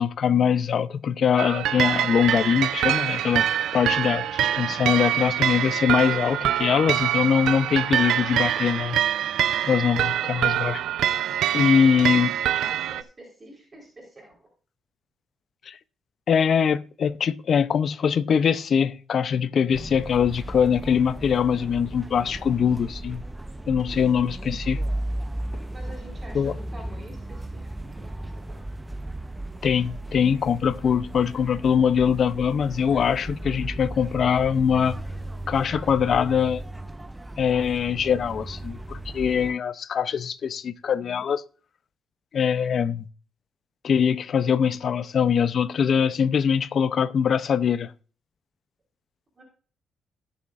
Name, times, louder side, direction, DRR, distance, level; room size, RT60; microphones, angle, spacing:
voice 1, 0.0-3.5 3.7-9.0 9.7-10.8 11.5-12.3 15.7-15.8 16.3-23.2 23.7-24.8 26.3-26.5 29.6-35.0 35.5-36.6 37.4-41.4 42.3-43.0 43.8-47.9, left 7 dB, 55° left, 0.6 m, -22 dB
sound 1, 1.4-13.0, right 11 dB, 85° right, 0.5 m, -25 dB
voice 2, 11.6-12.3 12.6-14.5 23.8-24.6 25.7-27.7 28.0-28.6 49.3-49.4, right 1 dB, 30° right, 3.9 m, -46 dB
sound 2, 19.7-39.5, right 1 dB, 10° right, 0.6 m, -35 dB
18.5 x 7.1 x 2.5 m
cardioid pair, 100°, 0 cm